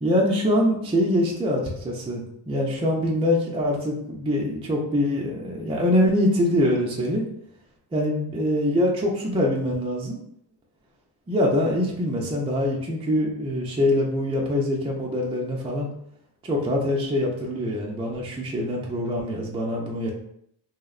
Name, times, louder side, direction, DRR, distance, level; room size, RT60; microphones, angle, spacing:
voice 1, 0.0-7.2 7.9-10.2 11.3-15.9 16.4-20.1, left 1 dB, 15° right, -2 dB, 0.3 m, -24 dB
2.7 x 2.0 x 2.4 m, 0.73 s
cardioid pair, 95°, 45 cm